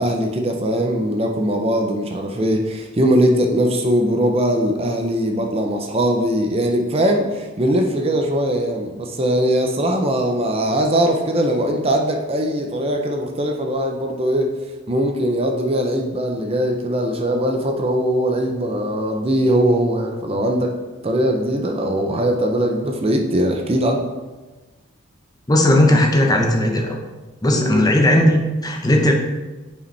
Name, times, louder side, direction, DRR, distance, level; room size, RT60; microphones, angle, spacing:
voice 1, 0.0-14.5 14.9-20.8 21.0-24.1 27.5-27.9, equal, 30° right, 2 dB, 0.6 m, -20 dB
voice 2, 25.5-27.0 27.4-29.1, left 1 dB, 20° left, 2 dB, 0.7 m, -16 dB
8.0 x 5.1 x 3.3 m, 1.2 s
head